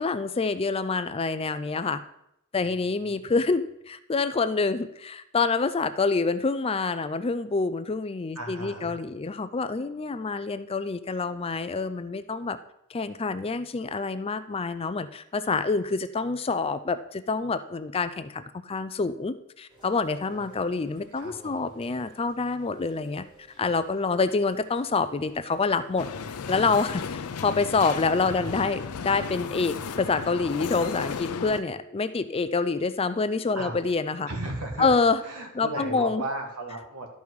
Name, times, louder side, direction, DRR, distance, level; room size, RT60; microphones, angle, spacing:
voice 1, 0.0-2.0 2.5-12.6 12.9-23.2 23.6-26.1 26.5-34.3 34.8-35.2 35.6-36.2, left 4 dB, 25° left, 12 dB, 0.4 m, -27 dB
voice 2, 2.6-3.3 8.4-9.0 20.3-20.6 21.2-21.7 28.3-28.7 33.5-33.8 34.3-34.9 35.2-37.1, right 2 dB, 85° right, 2 dB, 1.9 m, -36 dB
Rain, 19.7-26.9, right 2 dB, 20° right, 2.3 m, -56 dB
sound 1, 26.0-31.6, left 6 dB, 80° left, 0.5 m, -34 dB
Telephone, 29.4-34.4, right 3 dB, 55° left, 1.0 m, -50 dB
12.0 x 5.5 x 4.7 m, 0.78 s
head